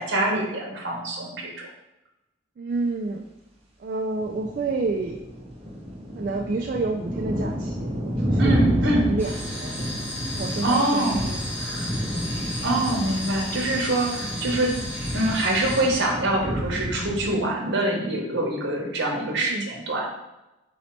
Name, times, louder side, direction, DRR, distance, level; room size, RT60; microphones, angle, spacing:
voice 1, 0.0-1.7 8.4-9.1 10.6-11.2 12.6-14.7 15.1-20.1, right 1 dB, 60° right, -1 dB, 1.0 m, -24 dB
voice 2, 2.6-3.3 3.8-5.2 6.1-9.8 10.3-11.7 12.1-12.2 14.2-14.4 19.4-19.7, right 3 dB, 45° right, 1 dB, 0.3 m, -30 dB
sound 1, 4.2-17.4, equal, 30° right, 0.8 m, -30 dB
sound 2, 9.2-15.9, left 1 dB, 10° left, 1.3 m, -34 dB
4.1 x 2.8 x 4.4 m, 0.96 s
head